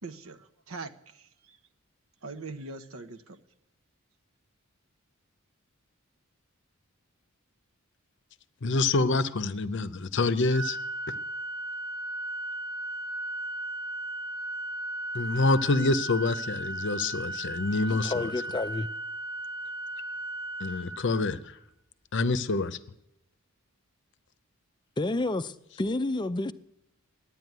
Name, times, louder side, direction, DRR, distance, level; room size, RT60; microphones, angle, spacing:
voice 1, 0.0-1.6 2.2-3.4, right 3 dB, 70° right, 0.9 m, -42 dB
voice 2, 8.6-10.8 15.1-18.3 20.6-21.4 22.1-22.8, left 3 dB, 55° left, 0.7 m, -26 dB
Organ, 10.5-21.6, right 2 dB, 90° right, 3.7 m, -36 dB
voice 3, 17.9-18.9 25.0-26.5, left 2 dB, 20° left, 0.4 m, -30 dB
12.5 x 9.9 x 9.3 m
head